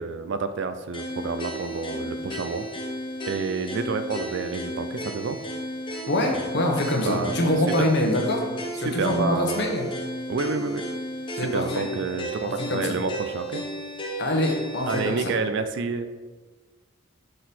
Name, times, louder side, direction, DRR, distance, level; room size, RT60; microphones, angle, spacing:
voice 1, 0.0-2.7 3.3-5.4 7.0-7.4 7.8-7.9 8.8-9.7 10.3-10.8 11.4-13.6 14.9-16.1, right 4 dB, 55° right, 10 dB, 0.4 m, -29 dB
sound 1, 0.9-15.4, equal, 25° left, 0.9 m, -34 dB
voice 2, 6.1-8.4 8.8-9.9 11.4-11.8 12.7-12.9 14.2-15.3, left 1 dB, 50° left, 1 dB, 1.0 m, -24 dB
6.6 x 4.0 x 4.2 m, 1.3 s
head